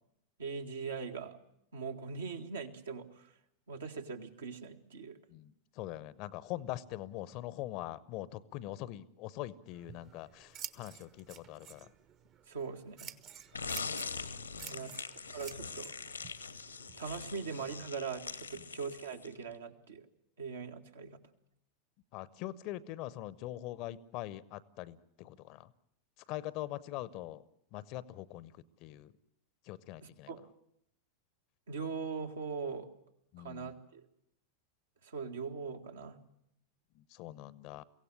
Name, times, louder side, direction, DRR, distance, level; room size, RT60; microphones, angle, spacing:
voice 1, 0.4-1.4 1.7-3.3 3.7-5.2 12.5-13.1 14.7-14.9 15.3-15.9 17.0-20.0 20.4-21.2 30.0-30.4 31.7-32.9 33.4-34.0 35.0-36.2, right 5 dB, 70° right, 4 dB, 1.8 m, -41 dB
voice 2, 5.3-11.9 14.5-15.0 22.1-25.7 26.3-27.4 27.7-28.5 28.8-29.1 29.7-30.3 33.3-33.8 37.0-37.8, left 15 dB, 40° left, 20 dB, 0.8 m, -43 dB
Scissors, 9.7-17.8, right 8 dB, 35° right, 1.1 m, -51 dB
sound 1, 13.5-19.4, left 5 dB, 80° left, 1.2 m, -42 dB
23.5 x 16.5 x 10.0 m, 0.78 s
figure-of-eight pair, 90°, 0 cm